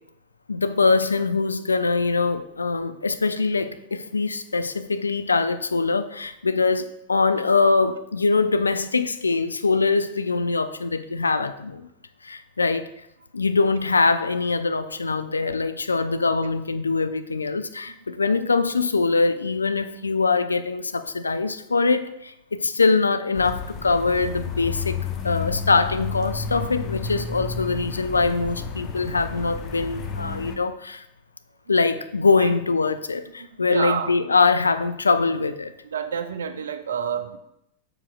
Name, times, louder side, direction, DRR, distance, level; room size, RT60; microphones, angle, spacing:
voice 1, 0.5-11.9 12.2-12.9 13.3-31.0 31.7-35.7, left 4 dB, 75° left, 11 dB, 0.3 m, -23 dB
sound 1, 23.3-30.6, left 5 dB, 35° left, 0.8 m, -31 dB
voice 2, 33.7-34.1 35.9-37.4, right 7 dB, 65° right, 10 dB, 0.5 m, -28 dB
7.0 x 6.9 x 2.3 m, 0.82 s
figure-of-eight pair, 90°, 0 cm